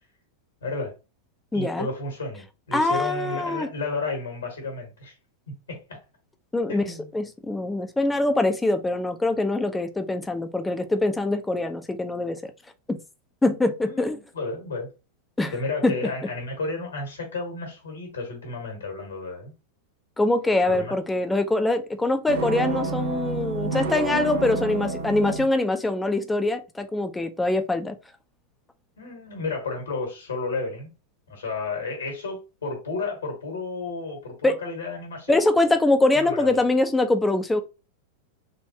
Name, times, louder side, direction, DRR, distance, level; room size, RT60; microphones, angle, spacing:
voice 1, 0.6-0.9 1.5-5.1 5.7-6.0 6.7-7.1 13.8-14.9 15.5-19.5 20.7-20.9 29.0-30.9 31.3-35.4 36.1-36.6, left 3 dB, 70° left, 1.4 m, -32 dB
voice 2, 1.5-1.9 2.7-3.7 6.5-6.9 7.1-12.5 12.9-13.0 13.4-14.2 15.4-15.5 15.8-16.0 20.2-28.0 34.4-34.6 35.3-37.6, left 2 dB, 10° left, 0.5 m, -23 dB
sound 1, 22.3-25.5, right 3 dB, 50° right, 0.6 m, -29 dB
3.6 x 2.5 x 2.8 m
figure-of-eight pair, 90°, 0 cm